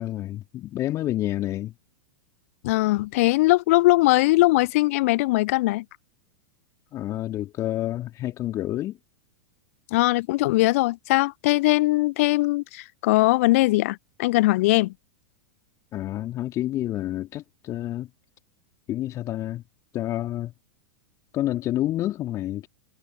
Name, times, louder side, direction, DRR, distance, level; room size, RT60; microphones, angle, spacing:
voice 1, 0.0-1.7 6.9-9.0 15.9-18.1 18.9-19.6 19.9-20.5 21.3-22.7, left 14 dB, 35° left, 3.7 m, -29 dB
voice 2, 2.6-5.8 9.9-14.9, left 20 dB, 50° left, 0.4 m, -20 dB
figure-of-eight pair, 95°, 10 cm